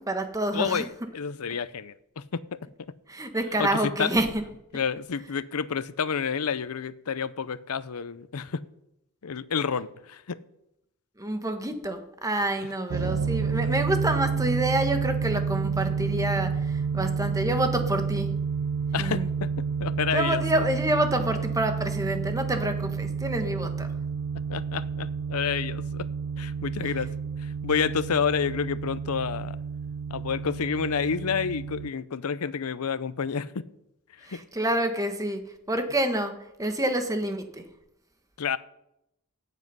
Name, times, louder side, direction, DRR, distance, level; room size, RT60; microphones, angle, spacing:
voice 1, 0.0-0.8 3.1-4.3 11.2-18.3 19.0-19.3 20.1-23.9 34.2-37.6, right 1 dB, 15° right, 7 dB, 1.3 m, -28 dB
voice 2, 0.5-2.7 3.6-4.1 4.7-8.6 9.2-10.4 18.9-19.5 19.8-20.4 24.5-26.1 26.4-27.1 27.4-29.6 30.1-33.5 34.3-34.4 38.4-38.6, left 6 dB, 75° left, 16 dB, 0.6 m, -29 dB
sound 1, 12.9-31.9, right 6 dB, 65° right, 0.3 m, -30 dB
17.5 x 7.4 x 5.5 m, 0.84 s
head